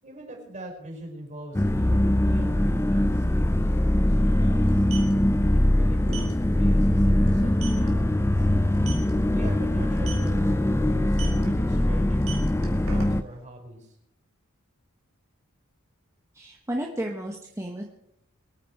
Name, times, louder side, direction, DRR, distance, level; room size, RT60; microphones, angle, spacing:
voice 1, 0.0-3.5 3.7-4.8 5.5-8.5 9.3-13.9, right 1 dB, 35° right, 1 dB, 5.2 m, -40 dB
sound 1, 1.5-13.2, left 1 dB, 10° left, 0.5 m, -22 dB
sound 2, 3.1-3.2 3.4-3.6 4.6-5.1 6.1-6.3 6.8-6.9 7.3-7.4 7.6-7.9 8.7-9.1 10.0-10.3 11.1-11.4 12.1-13.4, right 9 dB, 80° right, 3.3 m, -38 dB
voice 2, 16.3-17.8, right 1 dB, 15° right, 1 dB, 1.2 m, -32 dB
23.5 x 9.2 x 4.7 m, 0.78 s
head